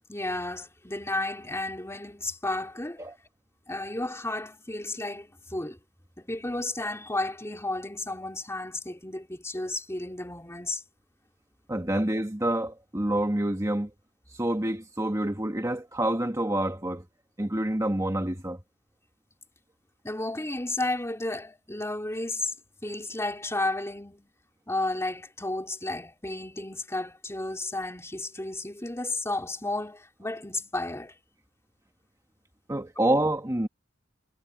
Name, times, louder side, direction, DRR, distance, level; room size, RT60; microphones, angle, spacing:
voice 1, 0.1-3.0 3.7-5.8 6.2-10.8 20.0-22.5 22.8-24.3 24.7-31.1, left 2 dB, 15° left, 3.2 m, -32 dB
voice 2, 11.7-13.9 14.4-17.0 17.4-18.6 32.7-33.7, right 1 dB, 15° right, 1.7 m, -27 dB
head